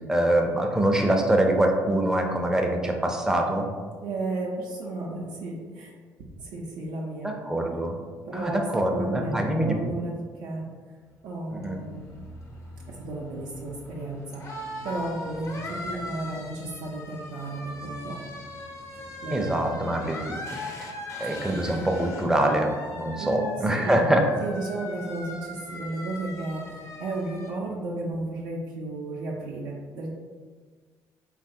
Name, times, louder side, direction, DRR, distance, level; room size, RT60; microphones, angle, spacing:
voice 1, 0.1-3.7 7.2-8.0 8.3-9.7 11.5-11.8 19.3-20.4 21.2-24.2, right 1 dB, 5° right, 2 dB, 0.4 m, -24 dB
voice 2, 4.0-5.9 6.4-7.3 8.2-10.6 11.2-12.0 12.9-14.4 14.8-18.2 19.0-20.1 23.2-24.0 24.4-30.1, right 2 dB, 80° right, -3 dB, 0.5 m, -34 dB
sound 1, 11.1-27.5, left 1 dB, 45° left, 0.5 m, -40 dB
3.1 x 2.3 x 2.6 m, 1.5 s
supercardioid pair, 70°, 7 cm